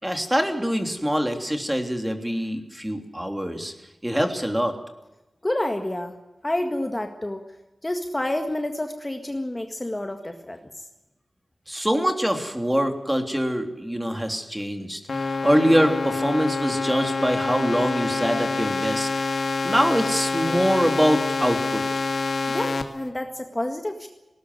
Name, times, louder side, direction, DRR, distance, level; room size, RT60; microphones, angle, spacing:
voice 1, 0.0-3.7 4.0-4.7 11.7-19.1 19.6-21.8, equal, 10° right, 5 dB, 3.2 m, -24 dB
voice 2, 5.4-6.1 6.4-7.5 7.8-10.6 22.5-24.1, left 1 dB, 20° left, 5 dB, 1.8 m, -29 dB
sound 1, 15.1-22.8, left 4 dB, 70° left, 2.4 m, -26 dB
19.5 x 19.0 x 9.5 m, 1.0 s
wide cardioid pair, 95°, 0 cm